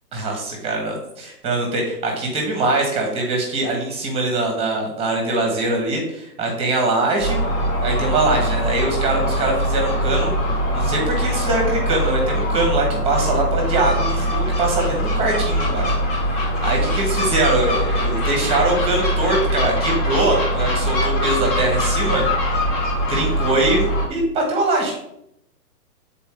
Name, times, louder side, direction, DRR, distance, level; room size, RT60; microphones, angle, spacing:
voice 1, 0.1-7.4 7.8-10.3 10.7-15.9 16.6-22.2 23.1-24.9, right 2 dB, 10° right, 0 dB, 1.2 m, -22 dB
Gull seagull, 7.2-24.1, equal, 15° left, 0.8 m, -22 dB
7.3 x 4.0 x 3.8 m, 0.80 s
hypercardioid pair, 140°, 49 cm